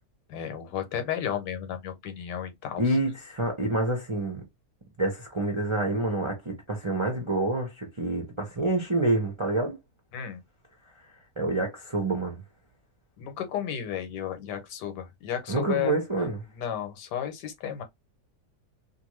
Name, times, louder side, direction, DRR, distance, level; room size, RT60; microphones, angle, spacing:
voice 1, 0.3-2.8 10.1-10.4 13.2-16.0 16.5-17.8, left 9 dB, 90° left, 1.3 m, -33 dB
voice 2, 2.8-4.4 5.0-9.8 11.4-12.4 15.5-16.4, right 2 dB, 40° right, 0.4 m, -27 dB
2.5 x 2.5 x 3.0 m
omnidirectional pair, 1.8 m